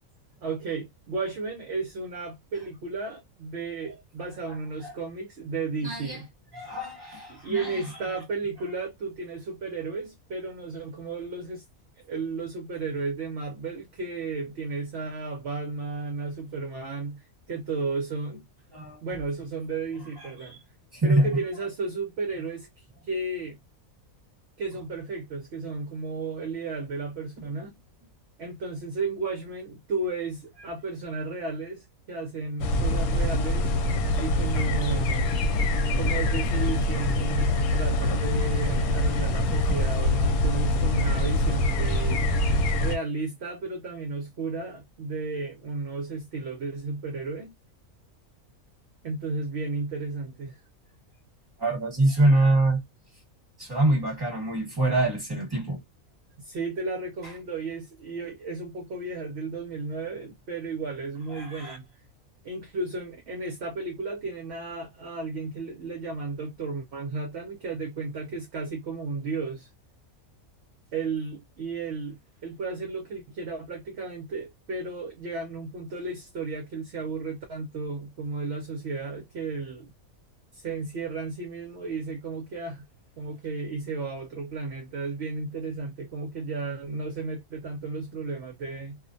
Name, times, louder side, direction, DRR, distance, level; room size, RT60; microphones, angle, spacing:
voice 1, 0.4-6.3 7.3-11.6 12.0-18.5 19.0-20.6 21.0-23.6 24.6-27.8 28.4-33.8 34.2-35.3 36.0-42.2 42.8-47.5 49.0-50.6 56.4-61.9 62.4-69.7 70.9-79.9 80.5-82.8 83.2-89.0, right 3 dB, 65° right, 0.7 m, -33 dB
voice 2, 5.8-6.2 6.5-7.8 18.7-19.0 20.4-20.5 20.9-21.4 51.6-52.8 53.6-55.8 61.3-61.8, right 2 dB, 20° right, 1.1 m, -25 dB
sound 1, 32.6-43.0, left 1 dB, 80° left, 1.0 m, -24 dB
2.4 x 2.1 x 2.5 m
omnidirectional pair, 1.5 m